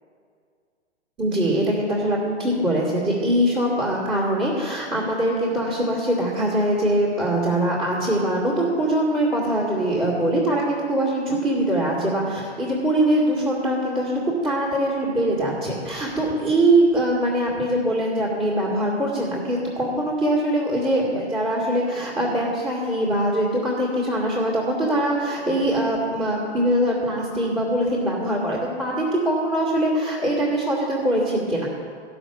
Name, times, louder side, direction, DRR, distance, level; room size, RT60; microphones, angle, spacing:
voice 1, 1.2-31.7, right 1 dB, 15° right, -6 dB, 2.2 m, -22 dB
14.0 x 6.0 x 7.1 m, 2.1 s
figure-of-eight pair, 120°, 35 cm